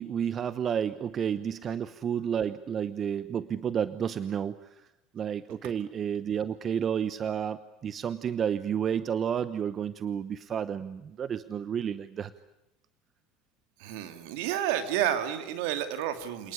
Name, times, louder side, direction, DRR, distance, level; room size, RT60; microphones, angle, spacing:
voice 1, 0.0-4.9 5.1-12.3, right 8 dB, 40° right, 14 dB, 1.0 m, -31 dB
voice 2, 13.8-16.5, right 11 dB, 70° right, 8 dB, 2.7 m, -30 dB
27.0 x 19.5 x 10.0 m, 0.90 s
hypercardioid pair, 75°, 0 cm